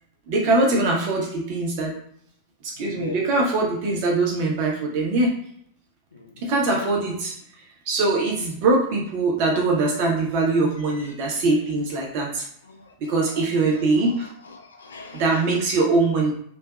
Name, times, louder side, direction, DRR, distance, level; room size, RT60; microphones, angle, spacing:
voice 1, 0.3-1.9 2.6-5.3 6.4-7.3 7.9-12.5 13.0-14.3 15.1-16.3, right 3 dB, 45° right, -1 dB, 0.8 m, -22 dB
voice 2, 2.8-3.3 6.1-6.3 9.5-9.6 10.9-11.1 12.6-15.7, left 4 dB, 70° left, 3 dB, 0.4 m, -41 dB
2.6 x 2.4 x 2.3 m, 0.67 s
figure-of-eight pair, 90°, 0 cm